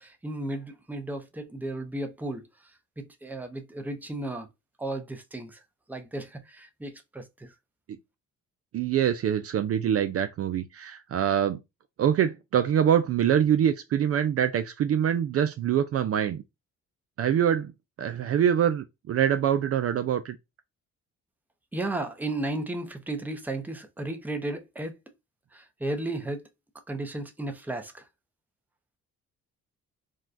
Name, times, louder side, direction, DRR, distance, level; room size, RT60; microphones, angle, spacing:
voice 1, 0.0-4.5 4.8-5.6 5.9-7.5 21.7-24.9 25.5-26.5 26.9-28.1, right 2 dB, 5° right, 0.6 m, -34 dB
voice 2, 8.7-11.6 12.0-16.4 17.2-17.7 18.0-20.4, right 9 dB, 50° right, 0.4 m, -24 dB
3.5 x 2.2 x 2.5 m
cardioid pair, 90°, 30 cm